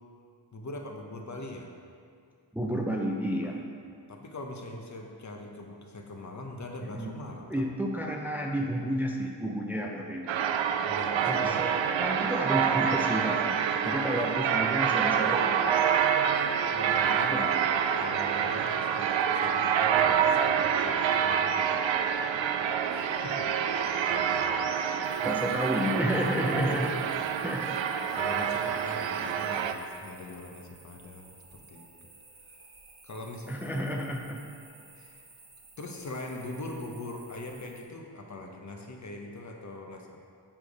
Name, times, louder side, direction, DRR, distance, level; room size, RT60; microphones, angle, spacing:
voice 1, 0.5-1.7 3.4-3.6 4.1-7.6 10.8-11.6 13.8-14.2 15.0-15.2 16.7-17.7 18.0-21.8 22.9-23.5 23.8-24.5 26.4-26.9 28.2-31.9 33.0-33.6 35.0-35.3 35.8-40.2, left 2 dB, 40° left, 2 dB, 0.9 m, -42 dB
voice 2, 2.5-3.6 6.8-7.1 7.5-10.4 11.3-15.9 17.3-17.5 25.2-26.9 27.4-27.8 33.5-34.5, equal, 5° right, 0 dB, 0.5 m, -31 dB
sound 1, 10.3-29.7, right 8 dB, 85° right, 0.5 m, -27 dB
sound 2, 25.0-37.8, right 3 dB, 55° right, 1.6 m, -54 dB
7.4 x 5.0 x 5.2 m, 2.3 s
wide cardioid pair, 95°, 44 cm